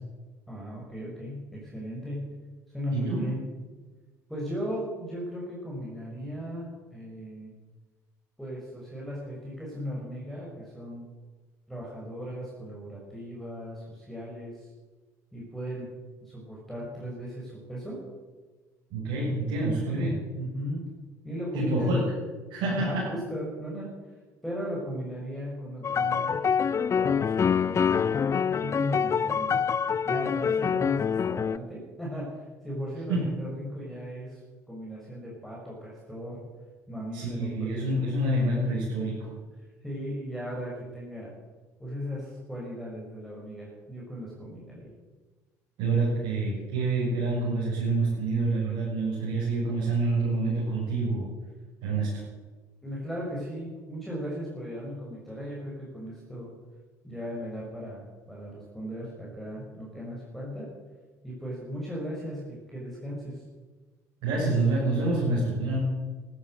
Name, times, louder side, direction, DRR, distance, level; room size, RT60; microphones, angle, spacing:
voice 1, 0.5-2.3 2.7-3.5 4.3-7.5 8.4-11.1 11.7-14.7 15.3-15.9 16.2-18.0 20.3-20.8 21.2-22.0 22.6-23.9 24.4-29.6 30.0-34.4 34.7-36.4 36.9-38.0 39.8-41.3 41.8-44.9 52.8-56.5 57.0-60.7 61.2-63.4, equal, ahead, -5 dB, 6.6 m, -37 dB
voice 2, 2.9-3.3 18.9-20.2 21.5-22.1 22.5-23.1 33.1-33.2 37.1-39.3 45.8-51.2 51.8-52.1 64.2-65.8, right 2 dB, 65° right, -7 dB, 7.1 m, -27 dB
sound 1, 25.8-31.6, left 7 dB, 35° left, 0.6 m, -26 dB
14.5 x 12.5 x 7.9 m, 1.3 s
hypercardioid pair, 60°, 9 cm